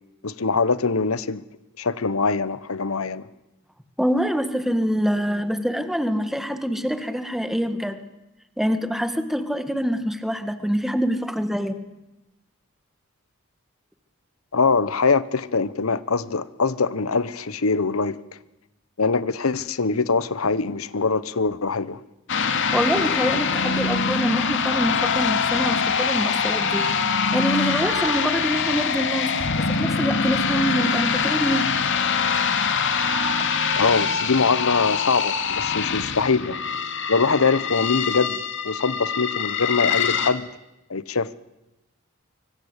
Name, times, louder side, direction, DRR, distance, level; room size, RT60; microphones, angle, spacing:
voice 1, 0.2-1.4 1.8-3.3 14.5-18.2 19.0-22.0 33.8-36.6 37.1-38.4 38.6-40.5 40.9-41.4, left 4 dB, 90° left, 17 dB, 1.0 m, -23 dB
voice 2, 4.0-8.0 8.6-11.7 22.7-31.7, equal, ahead, 9 dB, 1.8 m, -25 dB
sound 1, 22.3-40.3, left 6 dB, 60° left, 2.4 m, -24 dB
24.5 x 24.5 x 8.3 m, 0.97 s
head